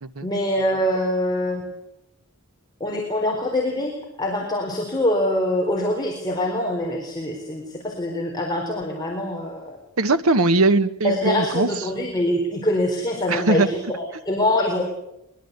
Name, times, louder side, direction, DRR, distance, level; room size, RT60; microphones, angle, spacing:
voice 1, 0.2-1.6 2.8-9.8 11.0-14.8, left 1 dB, 20° left, -1 dB, 4.2 m, -24 dB
voice 2, 10.0-11.7 13.3-13.7, right 2 dB, 80° right, 11 dB, 1.3 m, -20 dB
23.0 x 22.0 x 8.2 m, 0.85 s
head